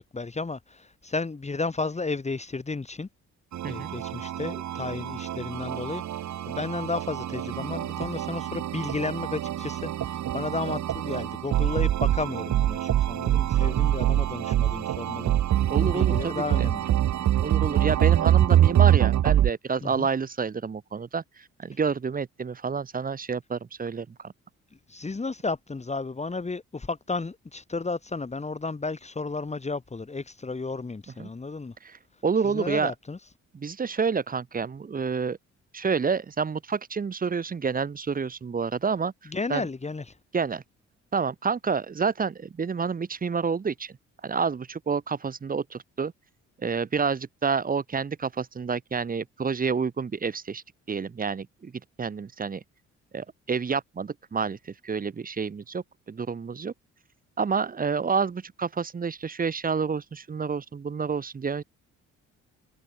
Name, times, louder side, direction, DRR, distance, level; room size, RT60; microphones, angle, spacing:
voice 1, 0.0-3.1 3.7-15.4 15.7-16.9 19.8-20.1 24.9-31.8 32.4-33.2 39.3-40.2, left 3 dB, 20° left, 2.3 m, -33 dB
sound 1, 3.5-19.5, right 12 dB, 70° right, 2.2 m, -25 dB
voice 2, 15.7-16.7 17.2-24.3 31.2-31.3 31.8-32.9 33.5-35.4 35.7-39.1 39.5-39.7 40.3-40.6 41.1-44.0 44.2-46.1 46.6-51.7 52.0-52.6 53.1-56.7 57.4-61.6, right 5 dB, 30° right, 1.0 m, -29 dB
cardioid pair, 90°, 30 cm